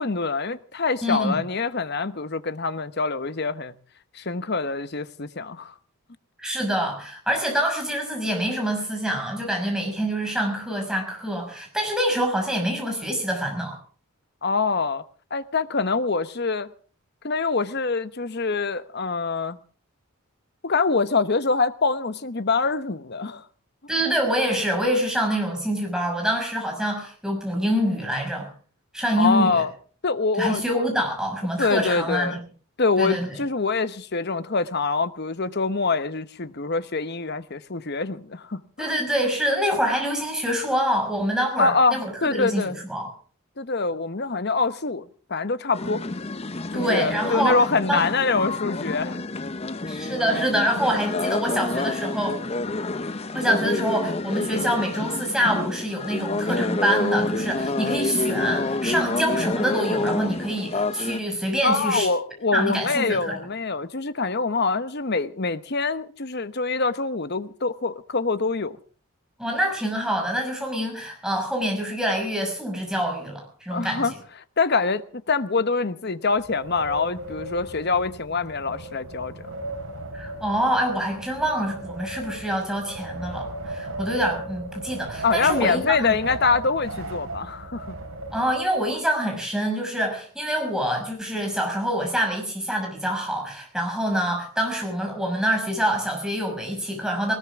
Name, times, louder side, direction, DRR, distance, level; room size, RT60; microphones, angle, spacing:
voice 1, 0.0-3.7 4.1-5.7 14.4-15.0 15.3-16.7 17.2-19.6 20.6-23.4 29.2-29.7 30.0-30.8 31.6-32.4 32.8-38.9 41.6-42.7 43.6-46.0 46.7-49.2 61.6-68.8 73.7-74.1 74.6-79.5 85.2-88.0, left 4 dB, 50° left, 1.0 m, -25 dB
voice 2, 1.0-1.4 6.4-13.8 23.9-28.5 28.9-29.6 30.4-32.4 33.0-33.4 38.8-43.1 46.7-47.6 47.9-48.0 49.9-52.4 53.3-62.1 62.5-63.4 69.4-74.1 80.1-86.1 88.3-97.3, equal, 5° right, 6.0 m, -26 dB
sound 1, 45.7-61.2, left 2 dB, 30° left, 0.7 m, -28 dB
Wind, 76.3-88.9, right 2 dB, 80° right, 5.2 m, -36 dB
19.5 x 19.5 x 3.6 m
head